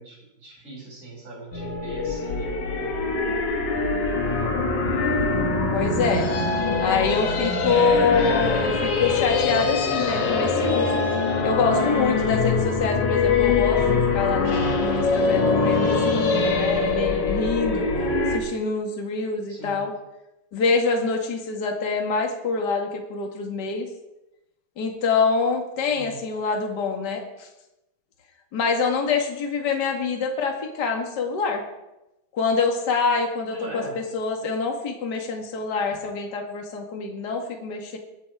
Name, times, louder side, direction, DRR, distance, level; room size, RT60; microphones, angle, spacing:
voice 1, 0.0-3.0 3.7-4.7 17.7-18.2 19.5-19.9 25.9-26.2 33.5-34.0, right 2 dB, 30° right, -3 dB, 6.8 m, -40 dB
sound 1, 1.5-18.4, left 4 dB, 55° left, 2.9 m, -23 dB
voice 2, 5.7-6.3 6.8-11.0 11.4-17.8 18.3-19.9 20.5-23.9 24.8-27.5 28.5-31.6 32.3-38.0, left 4 dB, 35° left, 2 dB, 1.8 m, -25 dB
20.5 x 8.5 x 4.9 m, 0.94 s
omnidirectional pair, 4.3 m